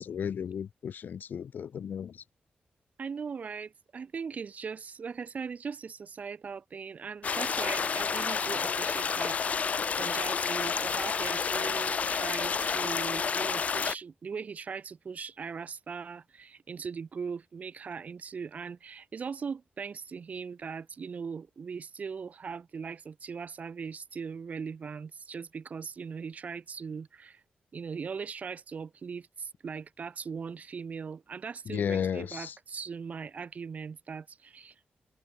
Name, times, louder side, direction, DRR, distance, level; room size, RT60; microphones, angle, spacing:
voice 1, 0.0-2.2 31.7-32.5, left 8 dB, 75° left, 1.2 m, -34 dB
voice 2, 3.0-9.5 10.0-27.4 27.7-34.9, right 6 dB, 50° right, 2.7 m, -39 dB
sound 1, 7.2-13.9, left 6 dB, 50° left, 0.5 m, -30 dB
wide cardioid pair, 135°, 3 cm